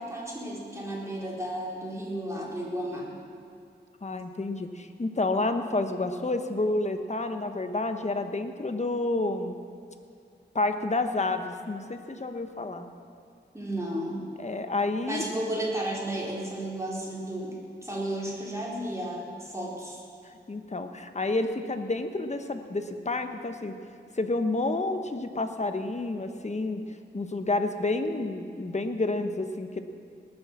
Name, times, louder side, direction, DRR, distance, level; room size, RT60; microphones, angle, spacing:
voice 1, 0.0-3.2 13.5-14.3 15.1-17.5 17.8-20.0, right 1 dB, 15° right, -4 dB, 4.2 m, -33 dB
voice 2, 4.0-9.6 10.5-12.9 14.4-15.2 20.5-23.8 24.2-26.8 27.1-29.8, left 2 dB, 40° left, 7 dB, 1.1 m, -29 dB
19.5 x 8.0 x 7.4 m, 2.5 s
wide cardioid pair, 75°, 18 cm